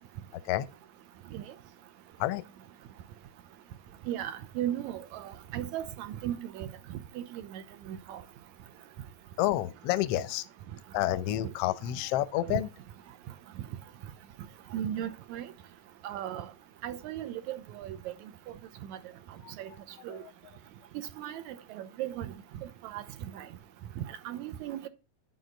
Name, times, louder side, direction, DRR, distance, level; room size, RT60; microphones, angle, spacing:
voice 1, 4.1-6.7 7.2-7.6 7.9-8.2 12.5-12.6 14.7-15.4 16.0-16.5 16.8-18.0 18.9-19.0 19.6-19.7 20.0-20.2 21.0-22.3 22.9-23.0 23.3-23.4 24.0-24.9, right 11 dB, 80° right, 2.1 m, -36 dB
voice 2, 9.4-10.5 10.9-12.7 19.4-19.5, left 14 dB, 75° left, 1.4 m, -29 dB
9.6 x 6.4 x 3.9 m
omnidirectional pair, 3.3 m